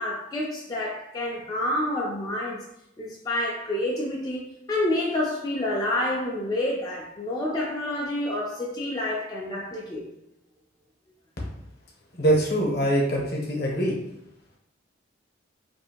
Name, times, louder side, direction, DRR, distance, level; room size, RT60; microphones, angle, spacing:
voice 1, 0.0-2.6 3.0-4.4 4.7-10.1, left 1 dB, 20° left, -5 dB, 0.3 m, -28 dB
voice 2, 12.2-13.9, right 1 dB, 55° left, -2 dB, 0.7 m, -23 dB
2.6 x 2.4 x 2.8 m, 0.81 s
head